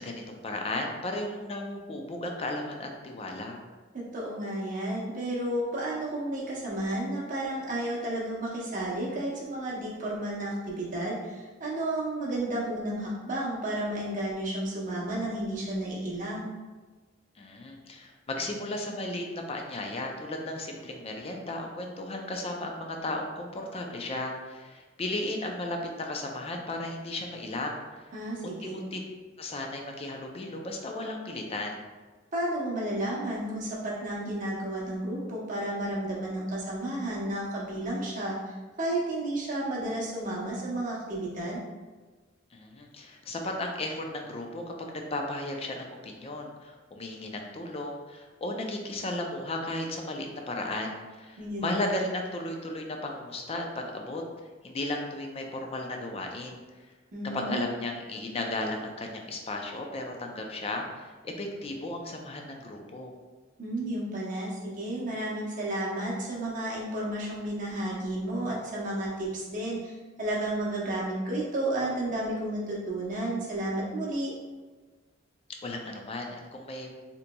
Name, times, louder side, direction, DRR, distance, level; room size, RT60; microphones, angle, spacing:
voice 1, 0.0-3.6 17.4-28.1 28.4-29.0 29.4-31.8 42.5-54.2 54.6-56.6 57.3-63.1 75.6-76.9, left 2 dB, 35° left, 2 dB, 0.4 m, -35 dB
voice 2, 3.9-16.5 28.1-28.8 32.3-41.6 51.4-51.8 57.1-57.6 63.6-74.3, right 1 dB, 45° right, -5 dB, 0.8 m, -32 dB
3.8 x 2.9 x 2.2 m, 1.3 s
head